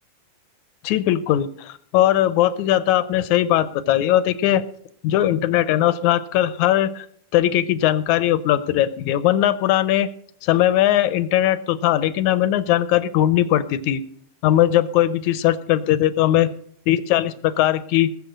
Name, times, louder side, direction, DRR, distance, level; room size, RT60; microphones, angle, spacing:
voice 1, 0.8-4.6 5.0-7.1 7.3-10.1 10.4-14.0 14.4-16.5 16.9-18.1, left 12 dB, 75° left, 15 dB, 1.9 m, -19 dB
20.5 x 7.5 x 6.5 m, 0.63 s
omnidirectional pair, 3.9 m